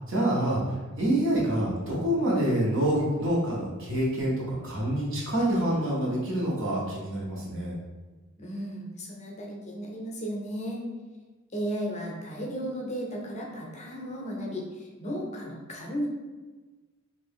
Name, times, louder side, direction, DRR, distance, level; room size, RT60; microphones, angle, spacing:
voice 1, 0.1-7.8, right 1 dB, 65° right, -6 dB, 1.1 m, -27 dB
voice 2, 8.4-10.8 11.5-16.1, equal, 30° left, -2 dB, 0.6 m, -34 dB
2.8 x 2.6 x 3.6 m, 1.3 s
head